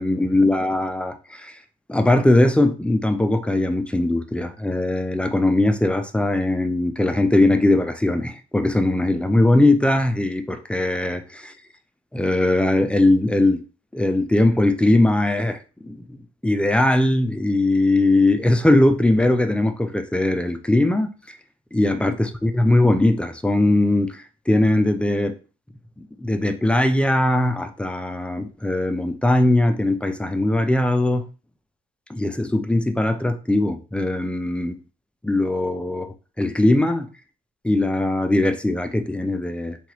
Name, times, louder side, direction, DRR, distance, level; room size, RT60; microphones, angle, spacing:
voice 1, 0.0-1.6 1.9-11.5 12.1-13.6 13.9-15.6 15.8-21.4 21.7-25.4 26.0-31.2 32.1-34.8 35.2-37.1 37.6-39.8, left 1 dB, 5° left, 0.4 m, -20 dB
3.0 x 2.3 x 2.9 m
cardioid pair, 90°, 20 cm